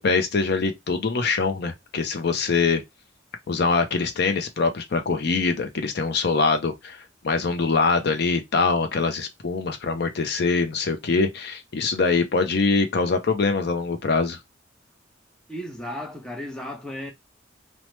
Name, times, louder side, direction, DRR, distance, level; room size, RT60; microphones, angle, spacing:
voice 1, 0.0-2.8 3.5-7.0 7.2-14.4, left 4 dB, 55° left, 0.5 m, -23 dB
voice 2, 15.5-17.1, left 1 dB, 5° left, 0.5 m, -34 dB
3.0 x 2.0 x 3.0 m
head